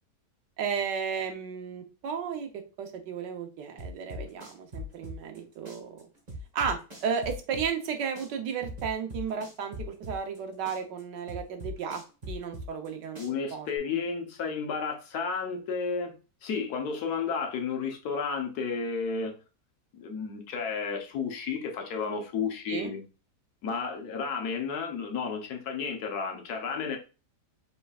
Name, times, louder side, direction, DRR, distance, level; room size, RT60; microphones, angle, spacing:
voice 1, 0.6-6.0 6.5-13.2 13.5-14.0 22.7-22.9, right 7 dB, 85° right, 1.5 m, -34 dB
sound 1, 3.8-5.4 5.6-7.9 8.1-10.4 10.6-12.9 13.1-13.8, left 2 dB, 25° right, 1.2 m, -40 dB
voice 2, 13.2-16.1 16.4-19.4 19.9-23.0 23.6-27.0, left 5 dB, 65° left, 1.4 m, -32 dB
5.5 x 3.5 x 2.3 m
omnidirectional pair, 1.8 m